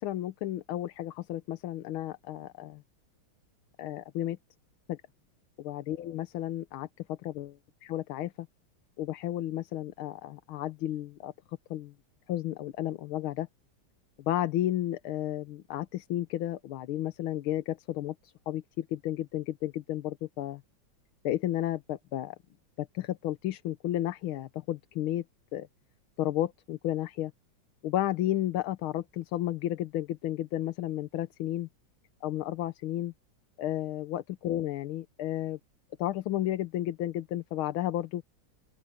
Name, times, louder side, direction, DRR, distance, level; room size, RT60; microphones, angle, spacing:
voice 1, 0.0-2.8 3.8-4.4 4.9-5.0 5.6-7.5 7.8-8.5 9.0-11.3 11.7-11.9 12.3-13.5 14.2-20.6 21.2-22.4 22.8-25.2 25.5-25.7 26.2-27.3 27.8-31.7 32.2-33.1 33.6-35.6 36.0-38.2, left 13 dB, 85° left, 1.7 m, -32 dB
open air
omnidirectional pair, 2.2 m